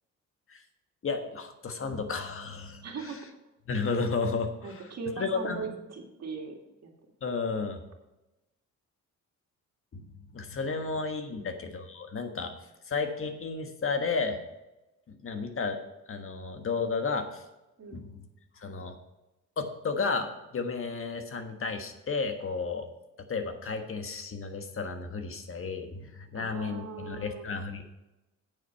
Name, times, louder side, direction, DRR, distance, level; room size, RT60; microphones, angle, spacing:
voice 1, 1.0-3.3 3.7-5.7 7.2-7.8 9.9-10.0 10.3-12.5 12.9-14.4 15.1-15.8 16.1-17.4 17.9-18.2 18.6-19.0 19.6-22.9 23.3-27.8, left 4 dB, 45° left, 6 dB, 1.4 m, -33 dB
voice 2, 2.8-3.4 4.6-6.9 10.7-10.8 11.3-11.6 17.8-18.0 26.3-27.6, right 4 dB, 60° right, 1 dB, 2.3 m, -40 dB
9.1 x 7.1 x 5.7 m, 0.97 s
cardioid pair, 90°, 30 cm